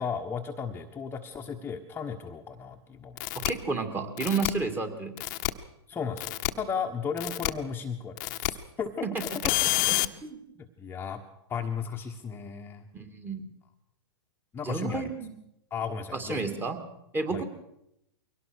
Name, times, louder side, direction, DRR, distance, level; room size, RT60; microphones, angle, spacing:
voice 1, 0.0-3.2 5.9-9.5 10.8-11.2 11.5-12.8 14.5-15.1 15.7-16.4 17.3-17.4, left 6 dB, 15° left, 3 dB, 1.4 m, -35 dB
sound 1, 3.2-3.5 4.2-4.5 5.2-5.5 6.2-6.5 7.2-7.5 8.2-8.5 9.2-10.1, left 21 dB, 45° left, 1.1 m, -28 dB
voice 2, 3.3-5.2 9.0-9.1 9.6-9.7 10.2-10.4 12.9-13.4 14.6-15.3 16.1-16.8 17.1-17.4, right 4 dB, 15° right, 6 dB, 2.6 m, -31 dB
23.0 x 18.0 x 6.5 m, 0.81 s
hypercardioid pair, 130°, 14 cm